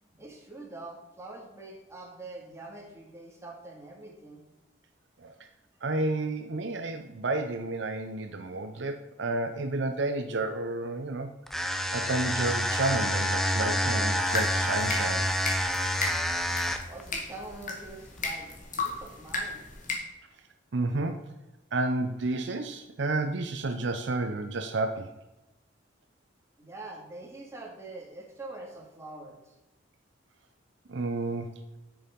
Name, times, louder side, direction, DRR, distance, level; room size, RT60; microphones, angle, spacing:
voice 1, 0.0-4.4 16.9-19.7 26.6-29.4, right 2 dB, 15° right, -2 dB, 2.3 m, -44 dB
voice 2, 5.8-11.3 11.9-15.3 20.7-21.4 21.7-25.1 30.9-31.6, right 2 dB, 65° right, 6 dB, 0.6 m, -31 dB
sound 1, 11.5-17.0, equal, ahead, 0.7 m, -28 dB
sound 2, 14.2-19.9, left 3 dB, 40° left, 1.9 m, -35 dB
9.0 x 6.9 x 5.2 m, 1.0 s
head